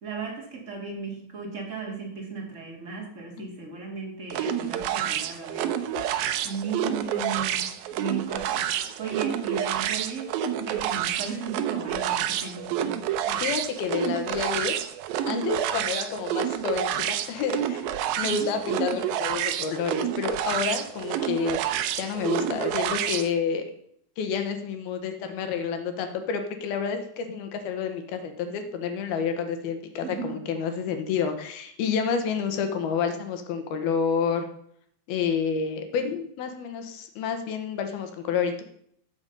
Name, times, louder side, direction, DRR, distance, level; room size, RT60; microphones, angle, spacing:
voice 1, 0.0-5.7 6.4-10.3 10.6-13.0 18.2-18.5 30.0-30.5, right 5 dB, 25° right, -1 dB, 1.6 m, -36 dB
sound 1, 4.3-23.3, right 10 dB, 85° right, 2.0 m, -29 dB
voice 2, 13.3-14.8 15.3-17.8 18.2-21.6 22.0-23.6 24.2-34.5 35.1-38.6, left 6 dB, 65° left, 7 dB, 2.9 m, -29 dB
14.0 x 7.0 x 5.5 m, 0.68 s
omnidirectional pair, 5.2 m